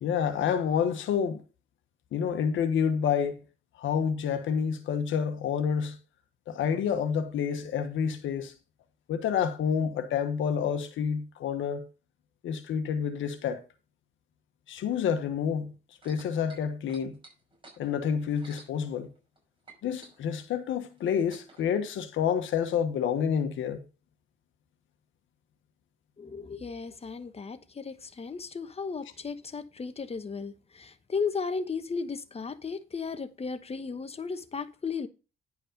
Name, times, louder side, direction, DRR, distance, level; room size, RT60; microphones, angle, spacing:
voice 1, 0.0-1.4 2.1-3.4 3.8-6.0 6.5-8.5 9.1-11.9 12.4-13.6 14.7-15.7 16.0-17.1 17.8-19.1 19.8-23.8, left 7 dB, 75° left, 1.3 m, -28 dB
sound 1, 15.9-19.4 19.6-21.7 22.5-22.6, right 3 dB, 25° right, 5.6 m, -53 dB
voice 2, 26.2-35.1, left 5 dB, 30° left, 1.1 m, -35 dB
10.5 x 5.4 x 5.2 m
cardioid pair, 90°, 20 cm